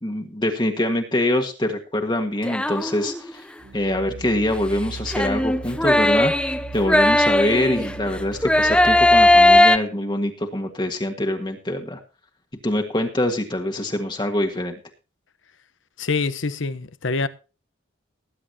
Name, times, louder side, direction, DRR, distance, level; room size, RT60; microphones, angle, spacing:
voice 1, 0.0-3.4 3.7-12.0 12.6-14.8, left 1 dB, 25° left, 1.6 m, -24 dB
sound 1, 2.4-3.3 5.1-8.0 8.4-9.8, left 1 dB, 5° left, 0.6 m, -17 dB
sound 2, 3.6-9.5, right 4 dB, 75° right, 1.6 m, -37 dB
voice 2, 16.0-17.3, left 4 dB, 75° left, 1.0 m, -25 dB
19.5 x 10.0 x 2.8 m
head